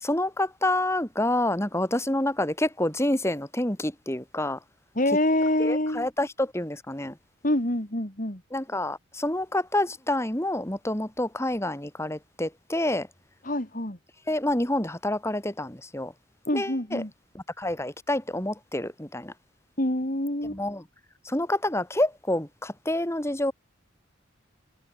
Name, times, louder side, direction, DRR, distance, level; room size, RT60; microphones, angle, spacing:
voice 1, 0.0-4.6 5.6-7.2 8.5-13.1 14.3-16.1 16.5-17.0 17.3-19.3 20.5-20.8 21.2-23.5, left 1 dB, 15° left, 2.5 m, -28 dB
voice 2, 5.0-6.1 7.4-8.4 13.5-14.0 16.5-17.1 19.8-20.6, left 1 dB, 40° left, 3.6 m, -26 dB
head